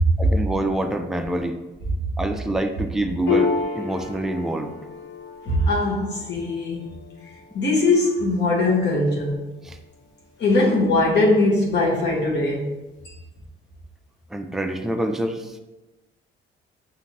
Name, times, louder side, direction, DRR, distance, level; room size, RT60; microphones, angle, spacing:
voice 1, 0.2-1.6 2.2-4.8 9.6-9.8 14.3-15.6, right 1 dB, ahead, 5 dB, 0.3 m, -26 dB
Piano, 3.3-10.2, left 5 dB, 85° left, 1.2 m, -31 dB
voice 2, 5.5-6.9 7.5-9.4 10.4-12.7, left 2 dB, 60° left, -3 dB, 1.0 m, -20 dB
5.6 x 2.5 x 2.9 m, 1.0 s
cardioid pair, 90°, 20 cm